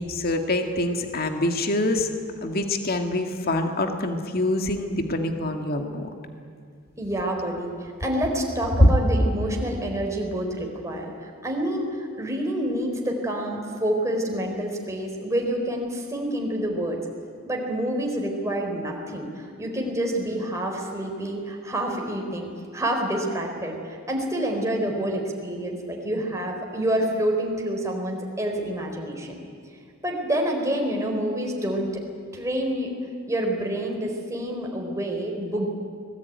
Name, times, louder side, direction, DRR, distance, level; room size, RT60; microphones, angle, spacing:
voice 1, 0.0-2.1 2.4-6.1 8.8-8.9, left 1 dB, 45° left, 4 dB, 2.0 m, -24 dB
voice 2, 7.0-17.0 17.5-29.4 30.0-31.9 32.3-32.9 33.3-35.7, right 1 dB, 15° right, 1 dB, 4.1 m, -28 dB
24.5 x 19.5 x 9.5 m, 2.2 s
head